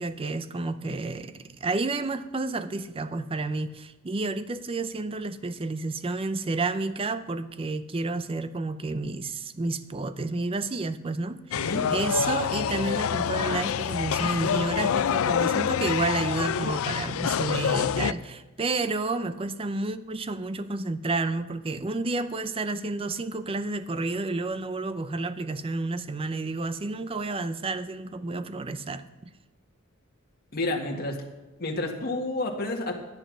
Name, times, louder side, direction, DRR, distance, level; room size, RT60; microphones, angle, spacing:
voice 1, 0.0-29.0, right 3 dB, 25° right, 13 dB, 0.5 m, -30 dB
sound 1, 11.5-18.1, left 8 dB, 75° left, 0.4 m, -26 dB
voice 2, 11.5-11.9 30.5-31.2 31.6-33.0, left 2 dB, 45° left, 2 dB, 1.7 m, -30 dB
12.0 x 10.0 x 6.2 m, 1.1 s
head